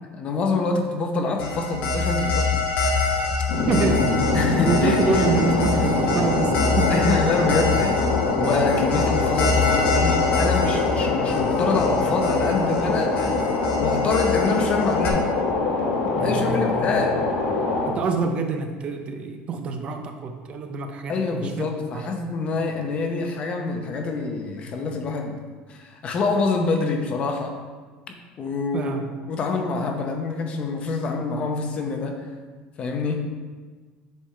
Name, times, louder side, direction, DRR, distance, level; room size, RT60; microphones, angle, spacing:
voice 1, 0.1-3.1 4.3-5.2 6.9-13.4 13.8-15.3 16.2-17.3 21.1-25.4 25.7-27.6 28.4-29.0 29.3-32.3 32.8-33.3, left 3 dB, 35° left, 4 dB, 0.7 m, -26 dB
sound 1, 1.4-15.1, left 4 dB, 60° left, 1.3 m, -26 dB
sound 2, 3.5-17.9, left 3 dB, 90° left, 1.3 m, -24 dB
voice 2, 3.7-4.3 4.6-7.0 16.1-17.0 17.9-22.1 28.7-29.1, right 4 dB, 35° right, 6 dB, 0.5 m, -26 dB
7.5 x 3.5 x 4.4 m, 1.4 s
cardioid pair, 150°, 3 cm